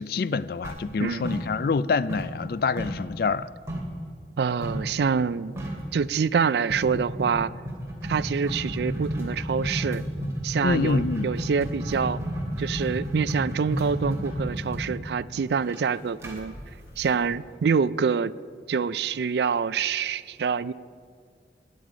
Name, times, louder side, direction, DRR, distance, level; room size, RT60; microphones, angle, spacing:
voice 1, 0.0-3.5 10.6-11.3, left 4 dB, 55° left, 0.3 m, -26 dB
sound 1, 0.6-1.8 2.1-4.0 4.6-4.9 5.2-5.3 5.6-5.9 6.7-17.5, equal, 15° right, 2.7 m, -32 dB
voice 2, 4.4-5.6 5.9-7.5 8.0-10.0 10.4-12.2 12.6-16.6 17.0-18.3 18.7-20.7, right 6 dB, 70° right, 0.4 m, -26 dB
20.0 x 9.5 x 5.0 m
head